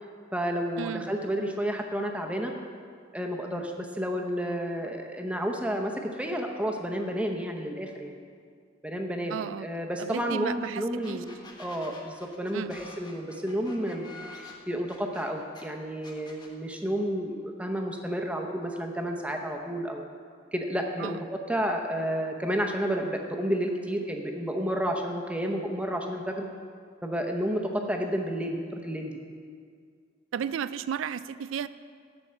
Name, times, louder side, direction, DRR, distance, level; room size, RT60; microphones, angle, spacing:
voice 1, 0.3-2.5 3.1-8.1 8.8-11.3 11.6-14.1 14.7-20.0 20.5-26.5 27.0-29.2, equal, 5° right, 2 dB, 0.7 m, -31 dB
voice 2, 9.3-9.7 10.0-11.2 12.5-12.7 21.0-21.2 27.8-27.9 30.3-31.7, right 7 dB, 90° right, 15 dB, 0.3 m, -33 dB
sound 1, 10.6-10.7 11.0-15.6 16.0-16.5, left 3 dB, 20° left, 1.1 m, -47 dB
11.0 x 4.5 x 7.3 m, 2.2 s
head